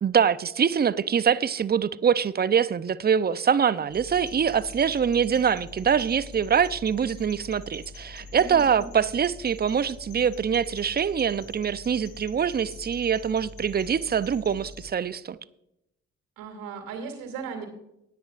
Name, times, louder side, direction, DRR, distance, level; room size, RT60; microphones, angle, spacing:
voice 1, 0.0-15.4, right 7 dB, 30° right, 0.6 m, -24 dB
sound 1, 3.9-14.9, left 3 dB, 70° left, 3.0 m, -44 dB
voice 2, 8.4-8.9 16.4-17.7, right 5 dB, 75° right, 2.7 m, -37 dB
18.5 x 9.4 x 2.5 m
hypercardioid pair, 45°, 35 cm